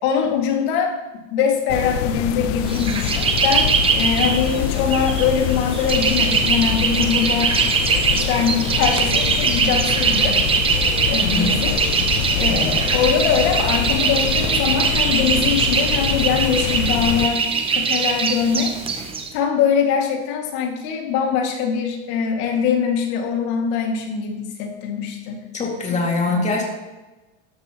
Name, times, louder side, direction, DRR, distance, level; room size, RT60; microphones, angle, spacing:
voice 1, 0.0-7.6 8.1-10.4 11.1-11.8 12.3-17.5 17.8-19.1 19.3-25.4 26.3-26.5, left 6 dB, 60° left, 3 dB, 2.2 m, -22 dB
sound 1, 1.7-17.3, left 11 dB, 85° left, 0.7 m, -25 dB
sound 2, 2.6-19.3, right 5 dB, 15° right, 0.7 m, -21 dB
voice 2, 11.2-11.6 12.5-12.8 25.5-26.6, left 3 dB, 20° left, 0 dB, 2.2 m, -23 dB
12.5 x 11.5 x 3.0 m, 1.1 s
cardioid pair, 160°, 36 cm